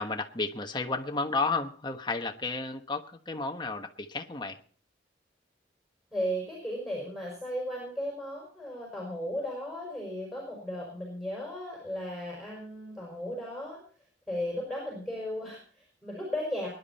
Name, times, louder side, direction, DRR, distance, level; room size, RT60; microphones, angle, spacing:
voice 1, 0.0-4.6, left 3 dB, 25° left, 1.2 m, -32 dB
voice 2, 6.1-13.8 14.3-16.7, equal, ahead, 5.5 m, -35 dB
22.0 x 11.0 x 4.3 m
head